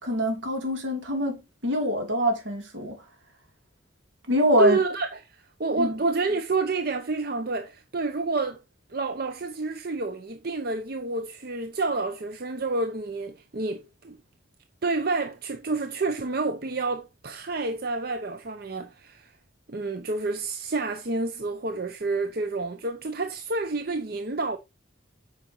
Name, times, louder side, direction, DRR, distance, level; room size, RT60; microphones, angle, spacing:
voice 1, 0.0-2.9 4.3-4.8 5.8-6.0, equal, 75° right, 3.0 m, -25 dB
voice 2, 4.6-8.6 8.9-14.2 14.8-19.3 19.7-24.6, right 3 dB, 50° right, 0.7 m, -29 dB
9.0 x 5.8 x 3.0 m
head